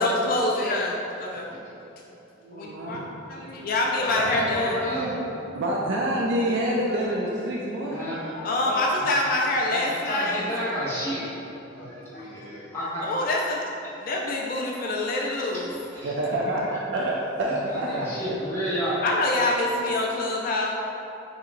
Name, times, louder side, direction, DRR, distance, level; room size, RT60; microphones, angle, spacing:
voice 1, 0.0-1.5 2.5-3.0 3.3-4.8 8.3-10.4 12.1-12.3 13.0-13.6 14.0-15.7 19.0-20.7, left 2 dB, 45° left, -1 dB, 0.3 m, -26 dB
voice 2, 2.4-3.6 4.2-4.4 5.0-5.2 5.5-9.1 16.0-18.4, right 1 dB, 65° right, -3 dB, 0.4 m, -28 dB
voice 3, 4.3-5.1 6.9-7.3 7.9-8.1 10.0-11.2 11.7-13.1 16.0-16.1 17.5-18.9, equal, 15° left, -11 dB, 1.3 m, -30 dB
6.6 x 2.9 x 2.5 m, 2.9 s
head